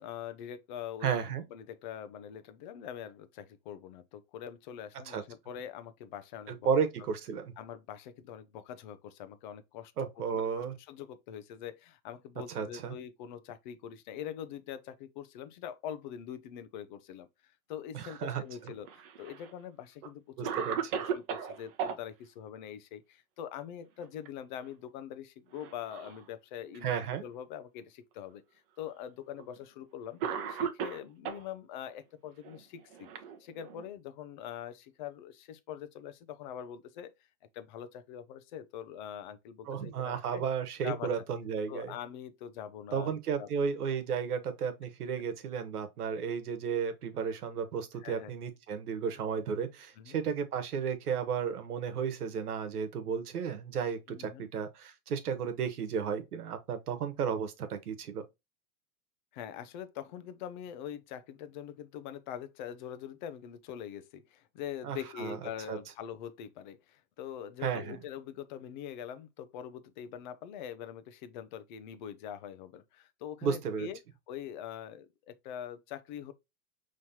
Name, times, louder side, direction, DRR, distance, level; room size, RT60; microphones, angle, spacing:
voice 1, 0.0-1.2 1.5-6.7 7.6-28.4 28.8-33.1 33.4-37.1 37.5-40.5 40.8-41.1 41.7-43.5 48.0-48.3 50.0-50.2 54.1-54.5 59.3-74.0 74.3-76.3, left 9 dB, 35° left, 0.5 m, -43 dB
voice 2, 1.0-1.4 5.1-5.2 6.5-7.5 10.0-10.8 12.5-12.9 17.9-18.4 20.4-20.9 26.8-27.2 39.6-41.9 42.9-58.2 64.8-65.4 65.7-65.8 67.6-68.0 73.4-73.9, right 6 dB, 90° right, 1.2 m, -33 dB
Cough, 18.6-19.5 20.0-20.1 20.4-22.0 23.8-24.3 24.6-24.7 25.5-26.2 27.0-27.1 28.2-28.3 29.4-29.6 30.2-31.5 32.4-33.9, right 7 dB, 40° right, 0.8 m, -36 dB
5.5 x 3.1 x 2.7 m
hypercardioid pair, 140°, 44 cm